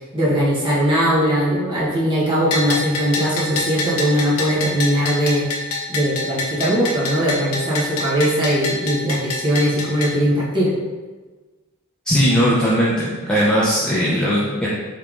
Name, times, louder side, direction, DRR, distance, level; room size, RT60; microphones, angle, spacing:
voice 1, 0.1-5.4 5.9-10.7, equal, 25° right, -8 dB, 1.2 m, -20 dB
Bell, 2.5-10.1, left 2 dB, 85° left, 0.7 m, -26 dB
voice 2, 12.1-14.7, equal, 5° left, -8 dB, 0.5 m, -18 dB
3.5 x 3.3 x 3.7 m, 1.3 s
head